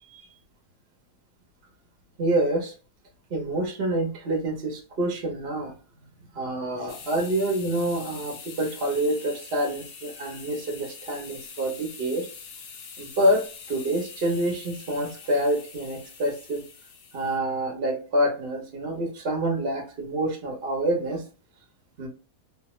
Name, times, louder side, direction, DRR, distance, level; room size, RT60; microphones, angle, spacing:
voice 1, 2.2-2.7 3.3-5.7 6.3-12.3 13.0-13.4 13.7-16.6 17.1-21.2 22.0-22.1, right 1 dB, 50° right, 2 dB, 0.7 m, -27 dB
sound 1, 6.9-17.4, left 6 dB, 70° left, 1.1 m, -44 dB
3.2 x 2.1 x 3.0 m, 0.36 s
omnidirectional pair, 1.7 m